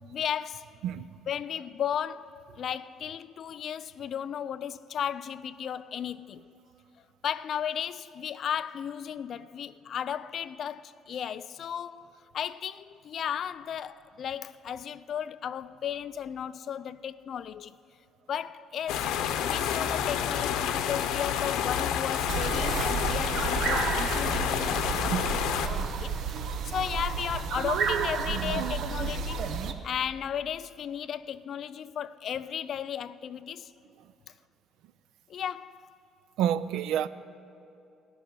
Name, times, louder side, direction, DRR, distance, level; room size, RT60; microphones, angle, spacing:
voice 1, 0.0-0.7 1.3-6.5 7.2-17.8 18.3-26.2 26.6-29.5 29.8-33.7 35.3-35.8, left 9 dB, 45° left, 0.3 m, -35 dB
sound 1, 18.9-25.7, left 9 dB, 85° left, 0.7 m, -29 dB
sound 2, 22.3-29.7, right 6 dB, 55° right, 0.7 m, -31 dB
voice 2, 28.3-28.7 36.4-37.1, right 10 dB, 80° right, 0.4 m, -30 dB
17.0 x 6.2 x 9.7 m
cardioid pair, 155°, 0 cm